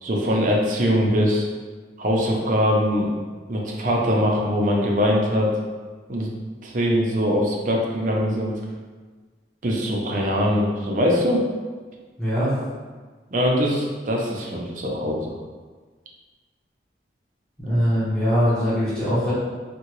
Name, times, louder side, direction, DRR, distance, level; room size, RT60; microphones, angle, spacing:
voice 1, 0.0-1.4 2.0-3.1 3.5-5.5 6.1-6.3 6.6-8.5 9.6-11.4 13.3-15.3, equal, 45° right, -2 dB, 0.5 m, -22 dB
voice 2, 12.2-12.5 17.6-19.3, equal, 5° left, -13 dB, 0.9 m, -21 dB
3.6 x 2.2 x 3.0 m, 1.4 s
head